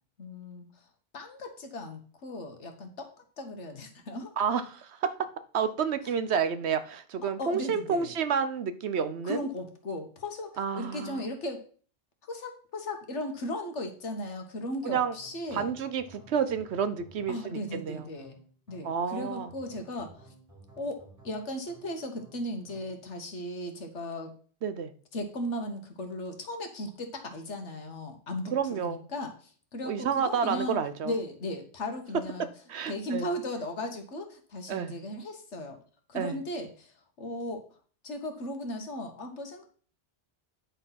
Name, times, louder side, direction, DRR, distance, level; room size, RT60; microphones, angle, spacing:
voice 1, 0.2-0.7 1.1-3.1 3.4-4.3 7.2-8.1 9.2-11.6 12.3-15.7 17.3-18.4 18.7-20.3 20.8-24.3 25.1-30.8 31.0-32.5 32.9-35.8 36.1-37.6 38.0-39.7, left 1 dB, 85° left, 5 dB, 1.7 m, -37 dB
voice 2, 4.4-5.3 5.5-9.4 10.6-11.2 14.8-15.1 15.5-18.1 18.8-19.5 24.6-24.9 28.5-29.1 29.9-31.1 32.7-33.3 34.7-35.0 36.1-36.4, right 7 dB, 70° right, 12 dB, 1.0 m, -30 dB
sound 1, 15.2-23.0, right 2 dB, 15° right, 2.4 m, -55 dB
9.9 x 4.3 x 5.8 m, 0.43 s
omnidirectional pair, 1.2 m